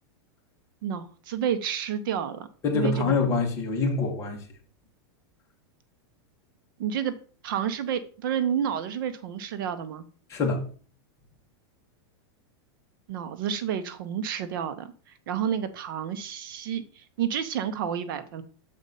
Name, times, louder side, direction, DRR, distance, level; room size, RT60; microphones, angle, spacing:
voice 1, 0.8-2.5 2.7-3.1 6.8-7.1 7.4-10.0 13.1-14.9 15.3-18.4, right 8 dB, 50° right, 0.7 m, -30 dB
voice 2, 2.6-4.4 10.3-10.6, left 4 dB, 20° left, 1.3 m, -25 dB
6.9 x 4.1 x 5.3 m
supercardioid pair, 175°, 14 cm